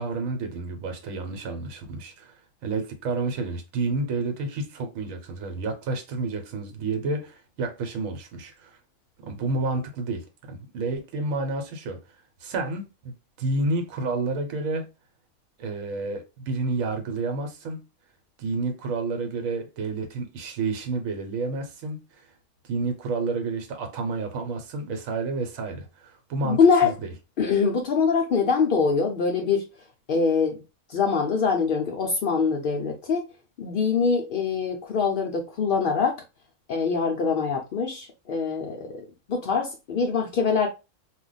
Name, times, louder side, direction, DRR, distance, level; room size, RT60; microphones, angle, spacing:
voice 1, 0.0-2.3 2.6-8.8 9.2-12.0 12.4-13.1 13.4-14.9 15.6-17.8 18.4-22.3 22.7-26.9, right 3 dB, 70° right, 1.1 m, -30 dB
voice 2, 26.4-26.9 27.4-29.7 30.1-30.6 30.9-33.3 33.6-36.2 36.7-40.7, left 5 dB, 85° left, 0.4 m, -24 dB
2.4 x 2.2 x 3.9 m
omnidirectional pair, 1.5 m